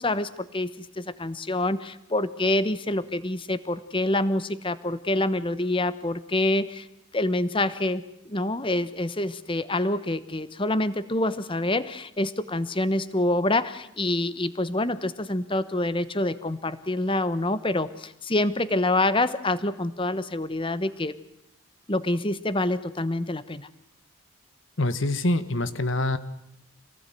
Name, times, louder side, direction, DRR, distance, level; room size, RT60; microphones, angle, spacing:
voice 1, 0.0-6.9 7.1-21.1 21.9-23.7, left 1 dB, 25° left, 14 dB, 1.1 m, -26 dB
voice 2, 24.8-26.2, left 2 dB, 65° left, 12 dB, 1.5 m, -25 dB
27.0 x 19.0 x 9.3 m, 0.80 s
head